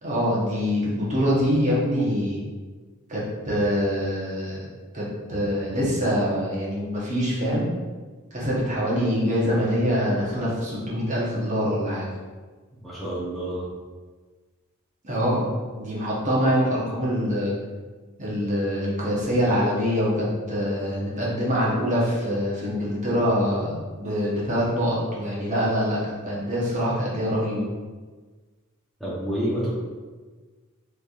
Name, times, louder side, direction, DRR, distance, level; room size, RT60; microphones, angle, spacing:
voice 1, 0.0-2.4 3.1-4.7 4.9-7.7 8.3-12.1 15.0-15.5 15.7-17.5 18.2-27.7, equal, 35° right, -6 dB, 0.9 m, -24 dB
voice 2, 12.8-13.7 29.0-29.7, right 1 dB, ahead, -9 dB, 0.8 m, -28 dB
4.1 x 3.2 x 2.4 m, 1.4 s
head